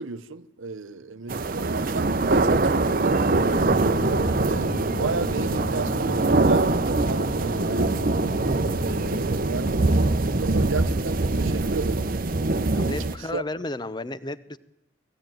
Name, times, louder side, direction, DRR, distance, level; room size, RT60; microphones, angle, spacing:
voice 1, 0.0-8.1 8.8-12.1 13.3-13.4, right 4 dB, 90° right, 0.9 m, -34 dB
sound 1, 1.3-13.2, right 2 dB, 45° right, 0.8 m, -23 dB
sound 2, 3.2-9.3, left 1 dB, 65° left, 2.1 m, -34 dB
voice 2, 12.7-14.6, left 2 dB, 20° left, 0.7 m, -33 dB
20.0 x 16.0 x 9.1 m
head